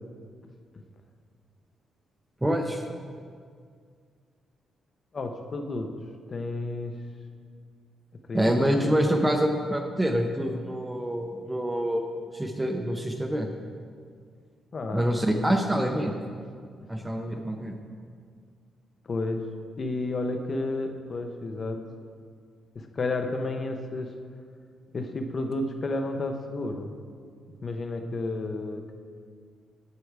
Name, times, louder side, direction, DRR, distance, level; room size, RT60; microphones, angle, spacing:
voice 1, 2.4-2.8 8.3-12.1 12.3-13.5 14.9-16.1 16.9-17.7, equal, 5° right, 4 dB, 0.5 m, -26 dB
voice 2, 5.1-5.9 6.3-7.0 8.3-8.8 14.7-15.1 19.1-19.4 19.8-21.8 22.7-24.1 24.9-26.9 27.6-29.0, left 2 dB, 30° left, 5 dB, 0.6 m, -31 dB
8.1 x 7.6 x 4.7 m, 2.1 s
wide cardioid pair, 170°, 0 cm